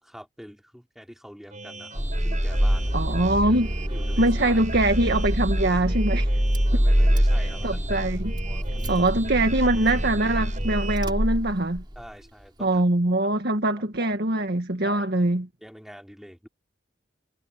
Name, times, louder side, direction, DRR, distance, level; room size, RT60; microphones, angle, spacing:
voice 1, 0.0-3.0 3.4-3.6 3.9-4.6 6.7-8.1 8.4-9.0 11.9-12.8 13.2-13.3 14.0-14.2 14.8-15.0 15.6-16.5, equal, ahead, 4.7 m, -45 dB
sound 1, 1.5-11.0, right 3 dB, 45° right, 4.2 m, -40 dB
Car / Engine starting, 1.9-12.0, equal, 25° right, 3.1 m, -25 dB
voice 2, 2.9-3.7 4.2-6.4 7.6-8.3 8.9-11.8 12.6-15.5, right 1 dB, 60° right, 1.8 m, -23 dB
head